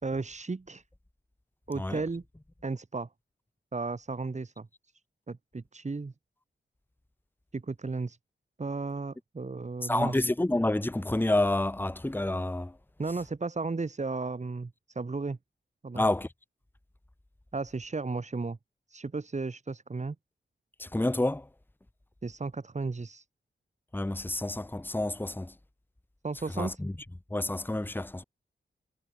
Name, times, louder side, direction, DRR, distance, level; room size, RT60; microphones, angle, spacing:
voice 1, 0.0-0.8 1.7-2.2 2.6-3.1 3.7-4.7 5.3-6.1 7.5-8.2 8.6-10.3 13.0-15.4 15.8-16.0 17.5-18.6 18.9-20.2 22.2-23.2 26.2-26.8, right 3 dB, 35° right, 2.4 m, -34 dB
voice 2, 9.8-12.7 16.0-16.3 20.8-21.5 23.9-25.5 26.6-26.9 27.3-28.2, left 1 dB, 10° left, 1.3 m, -29 dB
wide cardioid pair, 95°, 20 cm